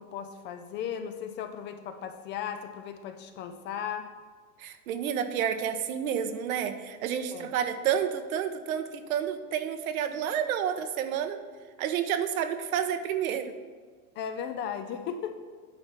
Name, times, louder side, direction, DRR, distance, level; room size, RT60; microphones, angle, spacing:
voice 1, 0.0-4.1 7.3-7.5 14.2-15.4, left 8 dB, 25° left, 8 dB, 0.4 m, -36 dB
voice 2, 4.6-11.4 11.8-13.5, right 9 dB, 75° right, 9 dB, 0.9 m, -30 dB
9.5 x 4.4 x 6.0 m, 1.5 s
supercardioid pair, 125°, 43 cm